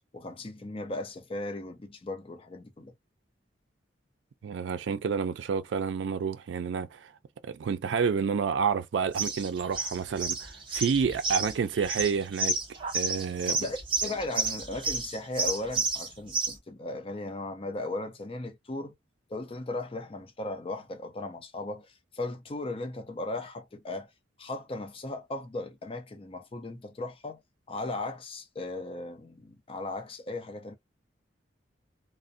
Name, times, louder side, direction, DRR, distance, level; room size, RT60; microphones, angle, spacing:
voice 1, 0.1-2.9 13.5-18.9 19.3-24.1 24.4-27.4 27.7-30.7, left 2 dB, 30° left, 0.5 m, -37 dB
voice 2, 4.4-7.1 7.4-12.6 12.9-13.7, right 6 dB, 80° right, 0.4 m, -29 dB
sound 1, 9.1-16.5, right 3 dB, 30° right, 0.6 m, -31 dB
2.5 x 2.1 x 2.5 m
head